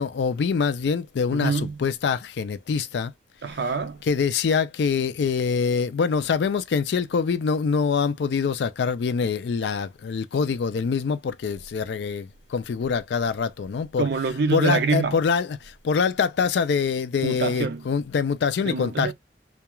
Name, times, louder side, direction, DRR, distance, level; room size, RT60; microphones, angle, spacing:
voice 1, 0.0-3.1 4.0-14.1 14.5-19.1, left 5 dB, 65° left, 0.3 m, -25 dB
voice 2, 1.3-1.8 3.4-4.0 14.0-15.2 17.2-17.9 18.6-19.1, right 4 dB, 65° right, 0.5 m, -25 dB
2.3 x 2.3 x 2.9 m
head